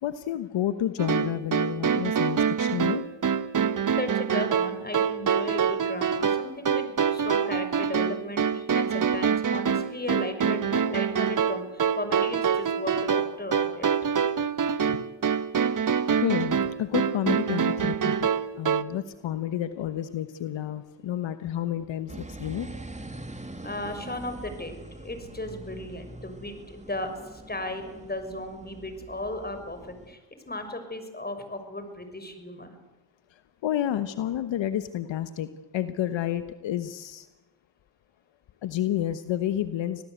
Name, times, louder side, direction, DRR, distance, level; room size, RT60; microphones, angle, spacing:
voice 1, 0.0-3.0 12.9-13.0 14.8-15.1 16.2-22.7 33.3-35.5 35.7-37.3 38.6-40.0, left 11 dB, 70° left, 11 dB, 1.2 m, -30 dB
sound 1, 1.0-18.8, right 7 dB, 40° right, 1.2 m, -25 dB
voice 2, 3.8-13.9 23.6-30.2 30.5-32.8, left 1 dB, 20° left, 8 dB, 6.1 m, -36 dB
sound 2, 22.1-30.1, right 2 dB, 15° right, 2.5 m, -43 dB
26.5 x 18.0 x 8.2 m, 1.1 s
supercardioid pair, 55°, 46 cm